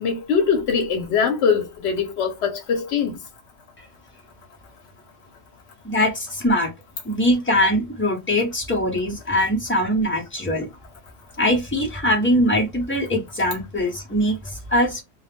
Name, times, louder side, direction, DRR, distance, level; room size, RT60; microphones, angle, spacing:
voice 1, 0.0-3.2, left 6 dB, 75° left, 0.8 m, -22 dB
voice 2, 5.8-6.7 7.0-10.7 11.4-15.0, equal, 15° left, 0.5 m, -22 dB
2.3 x 2.0 x 3.0 m
omnidirectional pair, 1.2 m